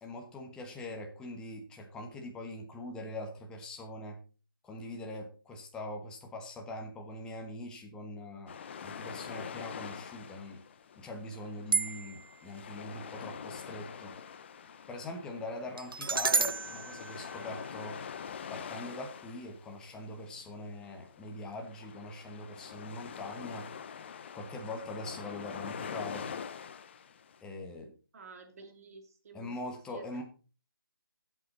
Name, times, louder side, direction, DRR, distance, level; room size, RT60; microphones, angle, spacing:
voice 1, 0.0-4.2 4.6-10.6 11.0-14.1 14.9-18.0 18.5-23.7 24.3-26.3 27.4-27.9 29.3-30.2, left 2 dB, 5° left, 2 dB, 1.3 m, -42 dB
sound 1, 8.5-27.4, left 7 dB, 30° left, 0.7 m, -45 dB
sound 2, 11.7-12.4 15.8-18.0, right 4 dB, 75° right, 0.6 m, -32 dB
voice 2, 28.1-30.2, right 4 dB, 45° right, 6 dB, 2.3 m, -52 dB
12.5 x 8.3 x 4.0 m, 0.36 s
figure-of-eight pair, 160°, 12 cm